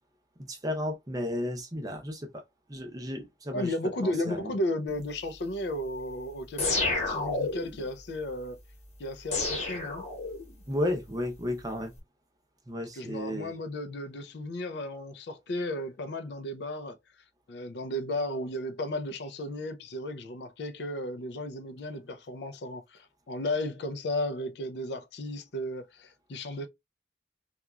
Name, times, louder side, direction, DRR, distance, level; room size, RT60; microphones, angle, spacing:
voice 1, 0.4-2.3 2.7-3.7 4.0-4.5 10.7-11.9 12.7-13.5, left 1 dB, 20° right, 0.6 m, -33 dB
voice 2, 3.5-8.6 9.0-10.1 12.9-17.0 17.5-26.7, left 1 dB, 65° left, 0.4 m, -34 dB
sound 1, 6.6-7.8 9.3-10.6, left 3 dB, 35° left, 1.1 m, -30 dB
2.9 x 2.4 x 2.2 m
head